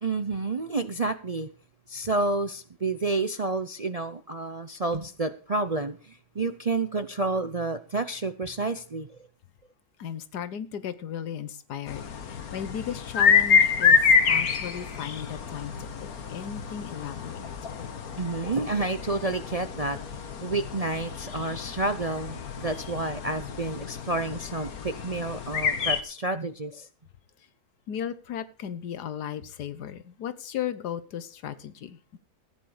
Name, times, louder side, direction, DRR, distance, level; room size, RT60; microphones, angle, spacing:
voice 1, 0.0-1.5 1.9-9.2 18.2-20.0 20.4-26.9, right 3 dB, 40° right, 0.5 m, -30 dB
voice 2, 10.0-14.0 14.3-15.7 16.0-17.5 27.9-32.2, left 9 dB, 85° left, 1.6 m, -36 dB
sound 1, 11.9-26.0, left 6 dB, 65° left, 1.7 m, -27 dB
15.0 x 9.4 x 4.9 m
omnidirectional pair, 1.7 m